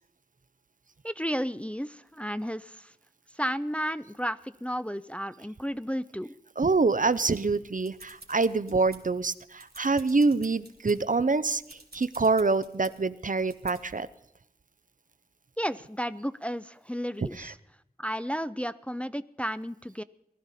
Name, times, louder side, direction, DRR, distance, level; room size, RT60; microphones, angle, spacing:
voice 1, 1.0-2.9 3.3-6.3 15.6-17.6 18.0-20.0, equal, 5° left, 14 dB, 0.4 m, -33 dB
voice 2, 6.6-14.1 17.4-17.5, right 3 dB, 55° right, 15 dB, 0.5 m, -26 dB
sound 1, 7.6-9.2 9.5-11.0 11.4-12.9 13.5-13.8, right 2 dB, 80° right, 2.7 m, -50 dB
19.0 x 12.5 x 4.1 m, 0.79 s
wide cardioid pair, 40°, 16 cm